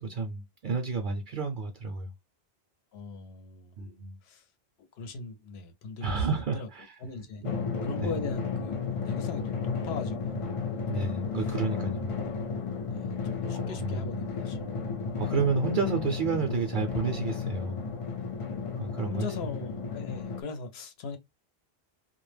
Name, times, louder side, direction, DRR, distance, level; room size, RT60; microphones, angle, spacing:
voice 1, 0.0-2.1 3.8-4.2 6.0-6.9 7.4-7.5 8.0-8.1 10.9-12.1 13.5-14.0 15.1-17.8 18.8-19.3, right 4 dB, 60° right, 0.6 m, -30 dB
voice 2, 2.9-3.8 4.2-4.5 4.9-6.3 6.5-6.7 7.0-7.4 7.8-10.4 12.9-14.6 19.1-21.2, left 4 dB, 80° left, 0.9 m, -39 dB
Drum, 7.4-20.4, left 5 dB, 50° left, 0.4 m, -33 dB
2.2 x 2.0 x 3.1 m
omnidirectional pair, 1.1 m